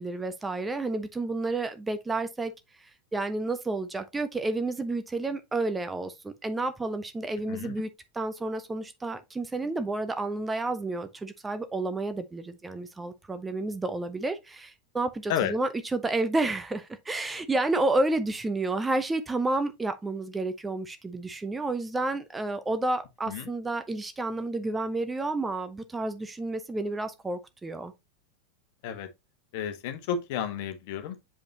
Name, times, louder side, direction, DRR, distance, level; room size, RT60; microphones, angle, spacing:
voice 1, 0.0-2.5 2.8-27.9, right 2 dB, 10° right, 0.7 m, -30 dB
voice 2, 29.5-31.3, left 8 dB, 50° left, 1.3 m, -31 dB
7.3 x 5.2 x 2.9 m
figure-of-eight pair, 90°, 0 cm